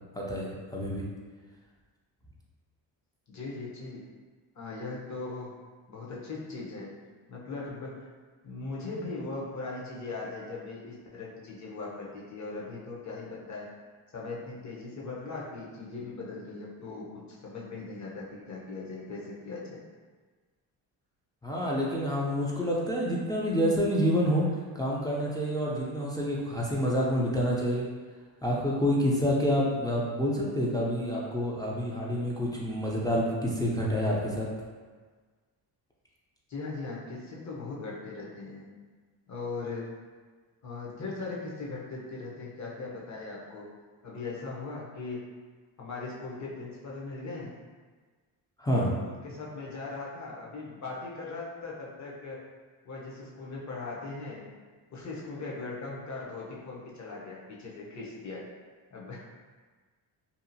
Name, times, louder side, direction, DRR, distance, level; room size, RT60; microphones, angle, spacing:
voice 1, 0.2-1.1 21.4-24.5 24.7-27.9 28.4-34.5 48.6-48.9, equal, 10° left, -5 dB, 0.4 m, -28 dB
voice 2, 3.3-4.0 4.5-5.6 5.9-6.9 7.3-8.1 8.4-13.7 14.1-19.8 36.5-38.6 39.3-39.9 40.6-43.7 44.0-45.3 45.8-47.5 48.7-52.4 52.8-54.5 54.9-58.4 58.9-59.2, left 3 dB, 40° left, -4 dB, 0.8 m, -39 dB
2.8 x 2.4 x 2.6 m, 1.4 s
cardioid pair, 80°, 45 cm